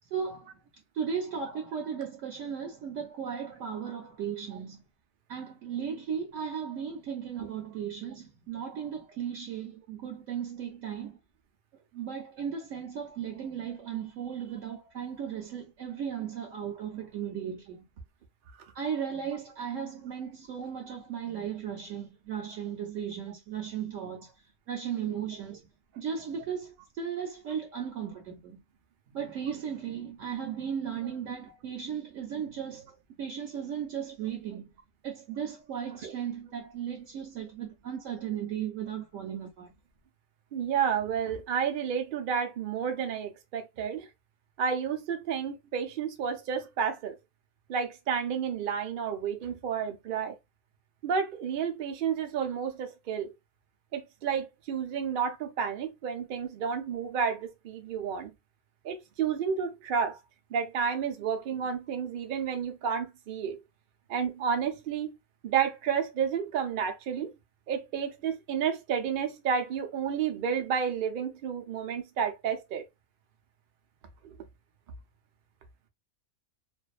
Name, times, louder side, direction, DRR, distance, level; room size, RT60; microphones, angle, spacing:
voice 1, 0.1-0.5 0.9-4.8 5.3-11.2 11.9-17.8 18.7-24.3 24.7-25.6 26.0-28.6 29.1-34.7 35.0-39.7, right 8 dB, 65° right, 0.8 m, -36 dB
voice 2, 40.5-44.1 44.6-47.1 47.7-50.3 51.0-53.3 53.9-58.3 58.8-60.2 60.5-63.6 64.1-65.1 65.4-67.3 67.7-72.8, right 7 dB, 90° right, 0.4 m, -31 dB
2.6 x 2.2 x 2.3 m
omnidirectional pair, 1.6 m